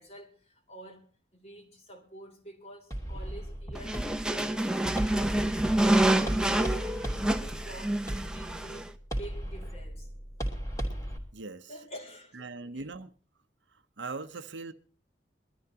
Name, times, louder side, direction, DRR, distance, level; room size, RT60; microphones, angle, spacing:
voice 1, 0.0-7.0 7.4-10.1 11.7-12.9, right 1 dB, 35° left, 3.3 m, -48 dB
sound 1, 2.9-11.2, equal, 20° left, 3.0 m, -36 dB
sound 2, 3.8-8.9, right 1 dB, 5° right, 0.8 m, -27 dB
voice 2, 11.3-11.7 12.3-13.1 14.0-14.7, right 3 dB, 85° right, 0.9 m, -40 dB
23.0 x 13.5 x 2.8 m
head